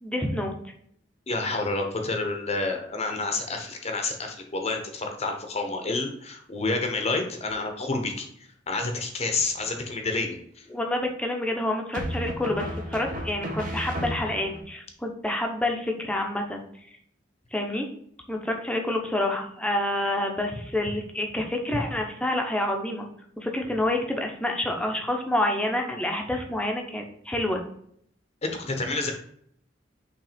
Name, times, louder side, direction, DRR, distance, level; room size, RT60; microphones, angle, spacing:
voice 1, 0.0-0.5 10.7-16.6 17.5-17.9 18.3-23.1 23.4-27.6, left 1 dB, 5° left, 2 dB, 0.9 m, -28 dB
voice 2, 1.3-8.3 8.7-10.7 28.4-29.1, left 3 dB, 35° left, 4 dB, 0.9 m, -29 dB
sound 1, 9.3-9.9 11.9-14.6, equal, 50° right, 1.2 m, -34 dB
5.9 x 3.2 x 5.0 m, 0.67 s
head